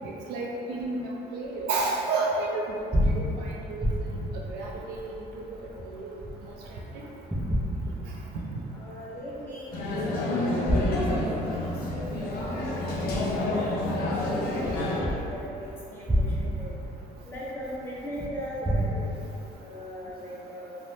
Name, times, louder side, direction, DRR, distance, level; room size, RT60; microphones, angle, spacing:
voice 1, 0.3-1.0 1.3-2.6 3.1-3.2 3.7-3.9 4.5-5.0 5.4-5.5 5.9-6.0, right 3 dB, 75° right, -2 dB, 0.4 m, -29 dB
sound 1, 2.7-6.8 7.3-8.7 9.1-9.2 10.4-14.1 14.6-18.9, equal, 10° right, 0.4 m, -30 dB
voice 2, 8.7-12.7 13.2-16.8 17.2-19.2 19.6-20.8, equal, 15° left, -9 dB, 0.8 m, -40 dB
sound 2, 9.7-15.1, left 1 dB, 65° left, 0.5 m, -29 dB
3.1 x 2.0 x 2.7 m, 2.7 s
cardioid pair, 110°, 17 cm